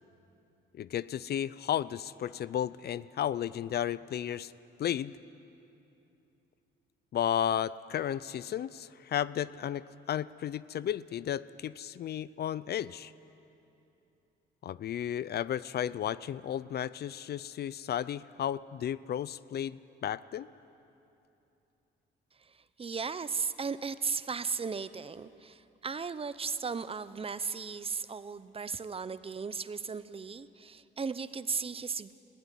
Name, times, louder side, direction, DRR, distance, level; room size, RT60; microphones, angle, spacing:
voice 1, 0.8-4.5 4.8-5.2 7.1-13.1 14.6-20.5, left 10 dB, 55° left, 19 dB, 0.5 m, -33 dB
voice 2, 22.4-32.1, right 5 dB, 30° right, 15 dB, 0.7 m, -36 dB
20.5 x 16.0 x 9.9 m, 2.8 s
cardioid pair, 90°, 20 cm